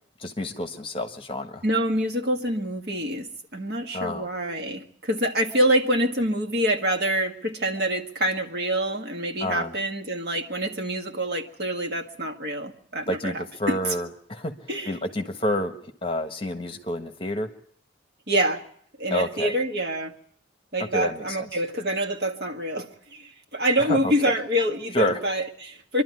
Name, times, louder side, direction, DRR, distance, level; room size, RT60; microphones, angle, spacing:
voice 1, 0.2-1.6 3.9-4.3 9.4-9.7 13.1-14.5 14.8-15.7 16.0-17.5 19.1-19.5 20.9-21.5 23.8-24.4 24.9-25.2, left 1 dB, 30° left, 6 dB, 1.4 m, -28 dB
voice 2, 1.6-3.3 3.5-13.9 14.7-14.9 18.3-18.6 19.0-20.1 20.7-26.0, right 1 dB, 55° right, 5 dB, 1.7 m, -26 dB
26.0 x 12.0 x 9.6 m, 0.64 s
head